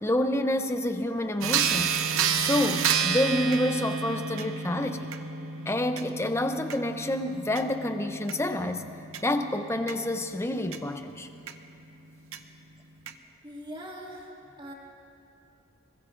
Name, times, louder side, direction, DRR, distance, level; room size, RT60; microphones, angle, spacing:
voice 1, 0.0-1.9 2.3-5.1 5.7-8.9 9.2-11.3, left 1 dB, 10° left, 7 dB, 0.6 m, -28 dB
sound 1, 1.4-10.8 11.5-11.6 12.3-12.4 13.1-13.2, right 6 dB, 70° right, 0.7 m, -30 dB
voice 2, 13.4-14.7, equal, 25° right, -3 dB, 2.1 m, -42 dB
26.0 x 22.0 x 2.6 m, 2.8 s
head